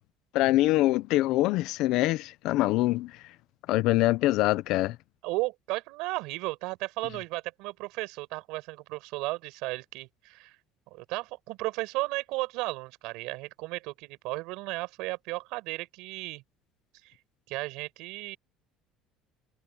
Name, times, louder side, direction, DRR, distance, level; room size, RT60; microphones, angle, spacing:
voice 1, 0.3-3.1 3.7-5.0, left 17 dB, 55° left, 0.6 m, -24 dB
voice 2, 5.2-10.5 10.9-16.4 17.0-17.1 17.5-18.4, right 22 dB, 70° right, 5.4 m, -34 dB
cardioid pair, 175°, 0 cm